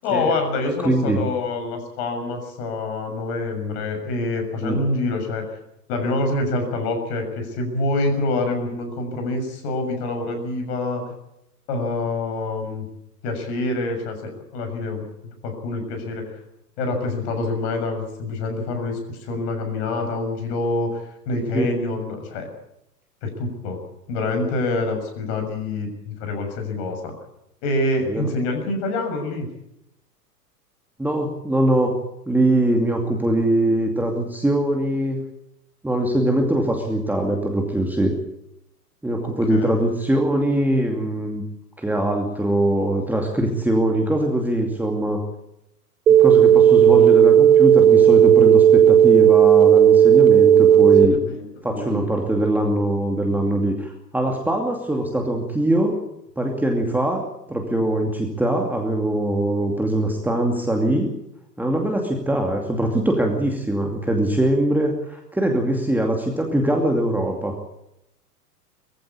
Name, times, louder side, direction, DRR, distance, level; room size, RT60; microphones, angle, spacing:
voice 1, 0.0-5.6 5.9-11.0 11.7-12.9 13.2-15.0 15.4-16.4 16.8-22.5 23.2-23.8 24.1-27.1 27.6-29.5 39.2-39.8 47.0-47.1 50.7-52.0, left 2 dB, 40° left, 6 dB, 6.9 m, -26 dB
voice 2, 0.8-1.2 4.6-4.8 21.5-21.7 28.1-28.3 31.0-32.0 32.3-35.2 35.8-38.1 39.0-41.4 41.8-45.2 46.1-51.2 51.6-56.0 56.4-61.1 61.6-67.5, right 1 dB, 5° right, 2 dB, 2.5 m, -22 dB
sound 1, 46.1-51.1, right 10 dB, 60° right, 1.2 m, -12 dB
22.5 x 15.5 x 8.6 m, 0.83 s
figure-of-eight pair, 105°, 48 cm